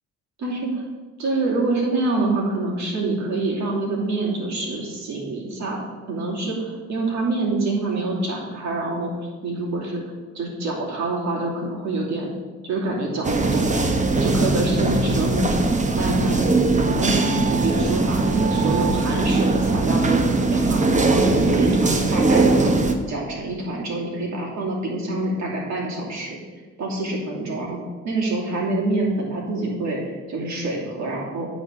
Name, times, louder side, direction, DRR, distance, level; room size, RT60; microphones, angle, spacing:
voice 1, 0.4-0.8 1.2-5.8 6.1-9.1 9.4-10.0 10.3-12.3 12.6-13.8 14.2-20.2 20.5-26.4 26.8-27.8 28.0-31.5, right 2 dB, 65° right, -3 dB, 2.8 m, -26 dB
sound 1, 13.2-22.9, right 3 dB, 25° right, 0.9 m, -20 dB
9.3 x 4.1 x 7.3 m, 1.4 s
cardioid pair, 90°, 30 cm